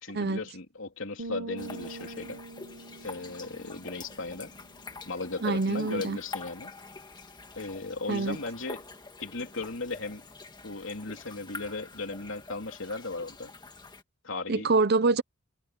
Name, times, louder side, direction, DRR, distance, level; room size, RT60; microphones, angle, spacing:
voice 1, 0.0-2.4 3.0-4.5 5.1-6.7 7.6-8.8 9.2-10.2 10.6-13.5 14.2-14.7, left 3 dB, 65° left, 3.4 m, -36 dB
sound 1, 1.2-4.9, right 2 dB, 80° right, 1.2 m, -44 dB
sound 2, 1.6-14.0, left 3 dB, 20° left, 1.7 m, -46 dB
voice 2, 5.4-6.2 8.1-8.4 14.5-15.2, right 3 dB, 50° right, 0.7 m, -25 dB
head